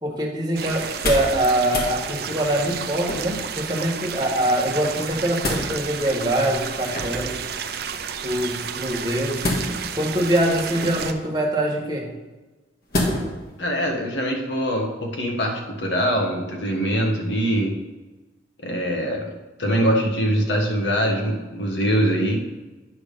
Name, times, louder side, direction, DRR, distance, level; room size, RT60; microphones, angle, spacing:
voice 1, 0.0-7.4 8.2-9.5 9.9-12.1, right 1 dB, 25° right, -2 dB, 1.5 m, -24 dB
sound 1, 0.6-11.1, right 7 dB, 60° right, 0.5 m, -32 dB
sound 2, 0.8-1.4 1.7-1.9 3.0-3.5 5.0-5.7 6.9-7.4 9.4-10.0 10.8-11.3 12.9-13.4 13.9-14.0, left 1 dB, 55° left, 1.7 m, -27 dB
voice 2, 13.6-17.7 18.6-19.2 19.6-22.4, equal, 80° left, 0 dB, 1.4 m, -23 dB
9.7 x 3.4 x 6.6 m, 1.2 s
head